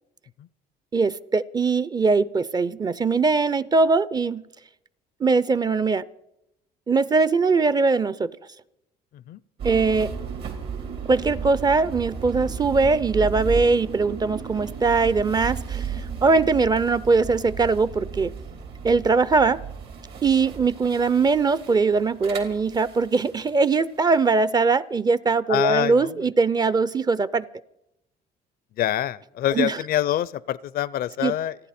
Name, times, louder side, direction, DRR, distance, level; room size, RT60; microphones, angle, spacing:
voice 1, 0.9-4.4 5.2-6.0 6.9-8.3 9.6-10.1 11.1-18.3 18.8-19.6 20.2-27.5 29.5-29.8 31.2-31.3, right 4 dB, 25° right, 18 dB, 0.5 m, -21 dB
sound 1, 9.6-23.6, right 6 dB, 70° right, 3.1 m, -34 dB
voice 2, 25.5-26.2 28.8-31.6, left 12 dB, 60° left, 20 dB, 0.5 m, -25 dB
29.5 x 10.0 x 4.3 m, 0.85 s
cardioid pair, 110°, 17 cm